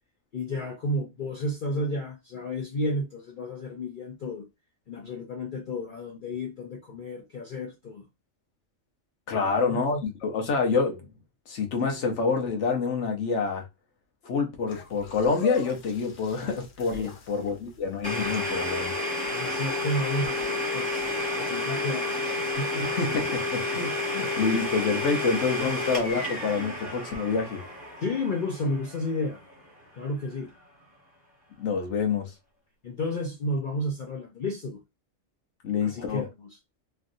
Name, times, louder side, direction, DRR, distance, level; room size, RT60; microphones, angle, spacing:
voice 1, 0.3-4.5 4.9-8.0 9.3-9.8 16.9-17.1 19.3-22.9 25.6-25.7 28.0-29.4 30.0-30.5 32.8-34.8 35.8-36.5, left 1 dB, 50° left, 0.7 m, -32 dB
voice 2, 9.3-11.1 11.5-13.7 14.2-18.9 22.8-27.6 31.6-32.3 35.6-36.3, left 5 dB, 70° left, 1.1 m, -27 dB
sound 1, 14.7-21.5, left 3 dB, 85° left, 1.1 m, -43 dB
Domestic sounds home sounds, 18.0-29.7, left 2 dB, 20° left, 1.3 m, -31 dB
3.2 x 2.6 x 2.6 m
omnidirectional pair, 1.3 m